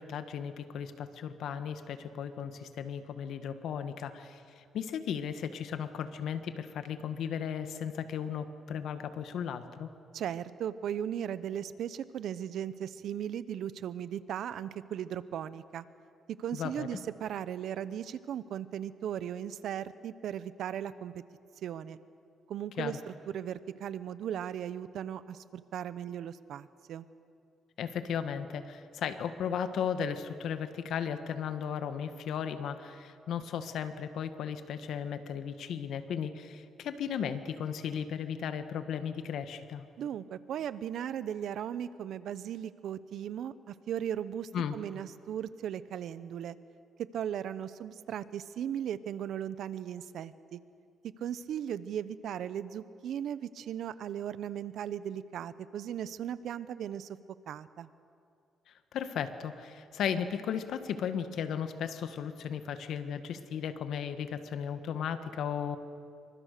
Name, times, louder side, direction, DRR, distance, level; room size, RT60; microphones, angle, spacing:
voice 1, 0.0-9.9 16.5-16.9 22.8-23.0 27.8-39.8 44.5-44.8 58.9-65.8, left 8 dB, 75° left, 9 dB, 1.6 m, -35 dB
voice 2, 10.1-15.8 16.3-21.1 21.6-22.0 22.5-27.1 40.0-46.6 47.0-50.6 51.2-57.2 57.5-57.9, right 9 dB, 75° right, 15 dB, 0.9 m, -37 dB
27.5 x 24.5 x 6.8 m, 2.4 s
cardioid pair, 90°, 0 cm